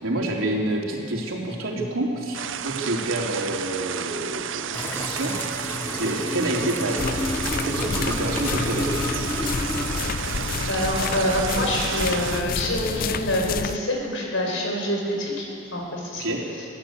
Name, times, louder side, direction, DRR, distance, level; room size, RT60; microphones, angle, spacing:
voice 1, 0.0-5.4 5.9-7.0 7.7-8.9 16.2-16.5, right 1 dB, 90° right, -1 dB, 3.8 m, -28 dB
sound 1, 2.3-12.4, right 9 dB, 65° right, 0.6 m, -32 dB
sound 2, 4.7-10.0, left 1 dB, 10° left, 0.9 m, -31 dB
sound 3, 7.0-13.8, left 5 dB, 45° left, 0.5 m, -29 dB
voice 2, 10.7-16.3, left 1 dB, 70° left, 0 dB, 5.0 m, -26 dB
22.0 x 15.5 x 8.3 m, 2.8 s
head